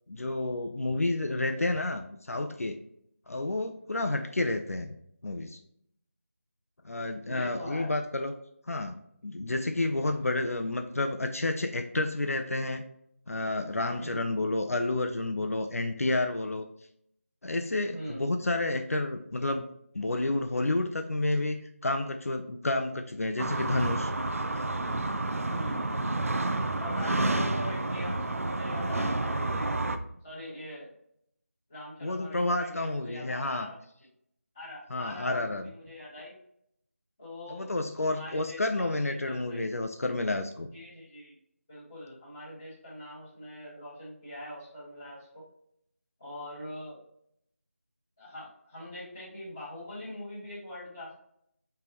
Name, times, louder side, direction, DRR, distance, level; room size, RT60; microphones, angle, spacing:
voice 1, 0.1-2.8 3.3-5.0 5.2-5.6 6.8-8.3 8.7-9.0 9.2-12.8 13.3-16.7 17.4-19.7 19.9-21.6 21.8-24.1 32.0-33.7 34.9-35.7 37.5-40.7, left 2 dB, 70° left, 6 dB, 0.5 m, -30 dB
voice 2, 7.2-7.9 14.0-14.3 17.9-18.3 25.5-25.9 26.8-29.7 30.2-30.9 31.7-33.8 34.5-36.3 37.2-37.7 38.0-39.6 40.7-41.4 41.7-45.4 46.2-47.0 48.2-51.1, left 1 dB, 15° left, -11 dB, 1.5 m, -42 dB
sound 1, 23.4-30.0, right 2 dB, 70° right, 0.5 m, -30 dB
5.0 x 3.4 x 2.9 m, 0.71 s
figure-of-eight pair, 180°, 8 cm